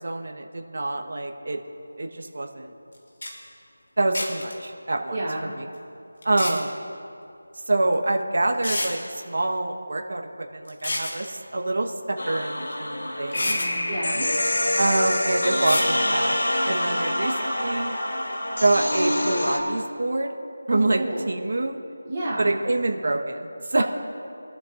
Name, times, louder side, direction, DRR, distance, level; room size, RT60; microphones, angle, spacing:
voice 1, 0.0-1.6 2.0-2.7 4.0-5.2 5.6-5.7 6.2-6.8 7.7-13.6 14.8-17.9 18.6-20.3 20.7-21.8 22.4-23.8, right 2 dB, 50° right, 3 dB, 1.3 m, -26 dB
sound 1, 2.9-3.0 3.2-3.3 4.1-4.5 6.2-6.6 7.9-8.0 8.6-8.9 10.7-11.2 12.7-12.8 13.3-13.7 15.6-15.9, left 1 dB, 50° left, 3.1 m, -28 dB
voice 2, 5.1-5.5 13.9-14.3 20.7-21.3 22.0-22.6 23.7-23.8, right 1 dB, 15° right, -11 dB, 3.2 m, -30 dB
sound 2, 12.2-19.6, left 1 dB, 65° left, 3.0 m, -26 dB
24.0 x 12.5 x 2.6 m, 2.6 s
figure-of-eight pair, 175°, 0 cm